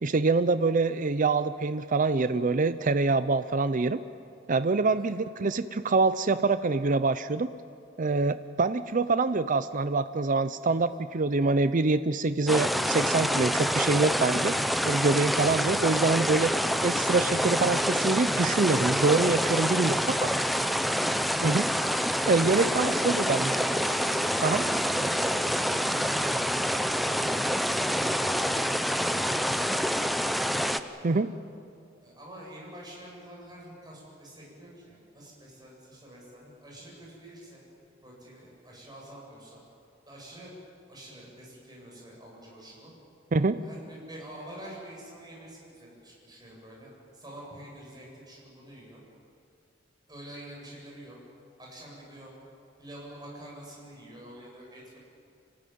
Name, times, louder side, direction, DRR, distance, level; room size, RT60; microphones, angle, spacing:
voice 1, 0.0-4.0 4.5-7.5 8.0-14.6 14.8-16.5 16.8-20.3 21.4-21.7 22.3-23.5 24.4-24.6 31.0-31.3 43.3-43.6, right 3 dB, 45° right, 12 dB, 0.6 m, -25 dB
sound 1, 12.5-30.8, equal, ahead, 0.7 m, -27 dB
voice 2, 19.6-20.1 22.6-26.3 27.0-30.5 30.9-31.2 32.0-37.6 38.0-39.6 40.1-40.5 40.9-42.9 43.5-49.0 50.1-51.2 51.6-52.3 52.8-55.0, right 1 dB, 20° right, -3 dB, 7.8 m, -47 dB
26.0 x 16.5 x 9.4 m, 2.4 s
head